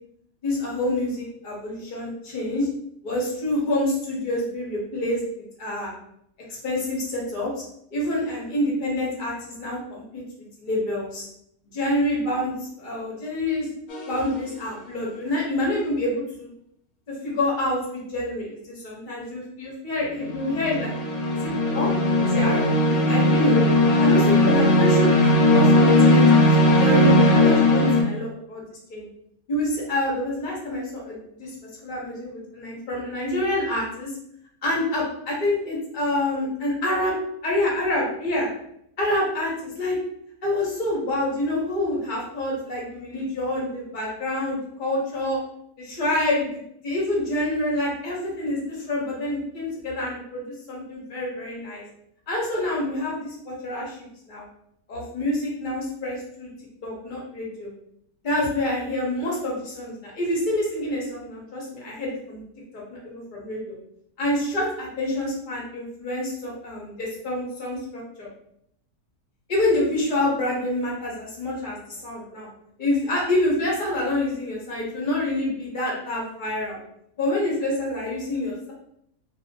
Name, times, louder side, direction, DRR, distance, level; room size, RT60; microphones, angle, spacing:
voice 1, 0.4-2.7 3.0-5.9 6.6-7.6 7.9-10.2 10.6-11.3 11.7-13.7 14.1-16.5 17.1-20.9 21.3-21.9 22.2-23.6 24.0-29.1 29.5-31.5 31.8-34.1 34.6-37.2 37.4-38.5 39.0-40.0 40.4-45.4 45.8-46.5 46.8-51.8 52.3-54.4 54.9-56.5 56.8-57.7 58.2-62.4 62.7-63.6 64.2-68.3 69.5-72.5 72.8-76.8 77.2-78.7, left 1 dB, 45° left, -4 dB, 0.6 m, -27 dB
sound 1, 13.9-14.3 20.2-28.0, left 1 dB, 75° left, 1.1 m, -18 dB
2.6 x 2.0 x 2.6 m, 0.74 s
omnidirectional pair, 1.6 m